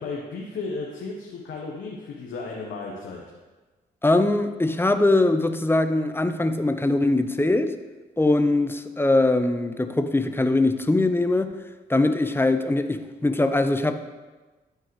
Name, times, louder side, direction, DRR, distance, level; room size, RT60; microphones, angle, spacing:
voice 1, 0.0-3.2, left 3 dB, 70° left, -2 dB, 1.1 m, -34 dB
voice 2, 4.0-7.8 8.2-11.5 11.9-13.9, left 2 dB, 10° left, 9 dB, 0.7 m, -22 dB
12.5 x 4.6 x 3.2 m, 1.2 s
hypercardioid pair, 45°, 20 cm